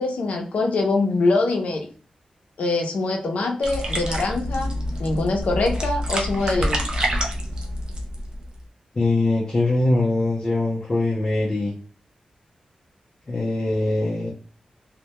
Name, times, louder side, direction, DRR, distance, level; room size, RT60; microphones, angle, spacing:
voice 1, 0.0-1.9 2.6-4.7 5.0-6.8, left 3 dB, 80° left, 3 dB, 0.6 m, -23 dB
sound 1, 3.6-8.6, equal, 35° right, 0.4 m, -27 dB
voice 2, 9.0-11.7 13.3-14.3, left 2 dB, 30° left, -3 dB, 0.5 m, -22 dB
2.1 x 2.1 x 2.8 m, 0.41 s
wide cardioid pair, 180°, 2 cm